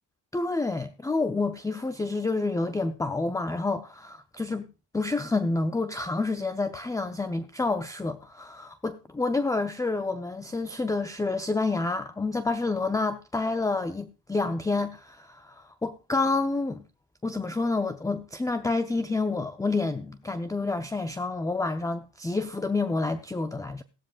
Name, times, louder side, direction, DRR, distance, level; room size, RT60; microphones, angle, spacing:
voice 1, 0.3-4.7 4.9-16.8 17.2-23.8, left 3 dB, 10° left, 0.6 m, -28 dB
16.0 x 12.5 x 2.4 m
cardioid pair, 115°, 38 cm